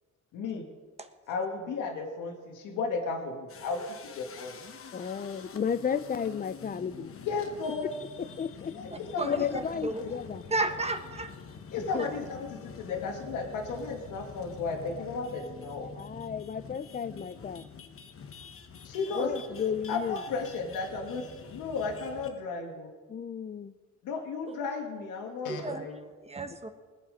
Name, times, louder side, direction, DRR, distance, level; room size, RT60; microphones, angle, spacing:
voice 1, 0.3-0.7 1.3-4.6 7.2-7.9 8.8-9.6 10.0-10.1 11.7-12.2 12.5-15.9 18.8-22.9 24.0-26.0, left 4 dB, 85° left, 2 dB, 1.8 m, -34 dB
sound 1, 3.5-22.5, left 6 dB, 45° left, 1.1 m, -47 dB
voice 2, 4.9-7.1 8.2-8.8 9.2-10.4 11.8-12.1 15.8-17.9 19.1-20.2 23.1-23.7, left 7 dB, 30° left, 16 dB, 0.6 m, -33 dB
voice 3, 10.5-11.3 12.0-12.1 24.5-24.6 25.5-25.8 26.2-26.7, right 2 dB, 20° right, 7 dB, 1.2 m, -32 dB
20.5 x 7.7 x 5.1 m, 1.4 s
cardioid pair, 90°, 30 cm